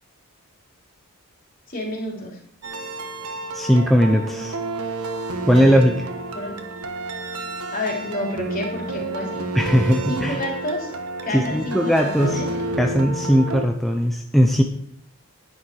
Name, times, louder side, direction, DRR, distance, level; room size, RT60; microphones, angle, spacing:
voice 1, 1.7-2.4 6.3-6.6 7.3-7.4 7.7-9.4 10.1-10.9 11.2-12.5, left 1 dB, 40° left, -1 dB, 3.6 m, -29 dB
sound 1, 2.6-13.7, right 2 dB, 85° right, 1.4 m, -30 dB
voice 2, 3.5-4.6 5.4-6.1 9.5-10.4 11.3-12.4 12.8-14.6, equal, ahead, 2 dB, 0.7 m, -18 dB
10.5 x 10.5 x 4.6 m, 0.69 s
head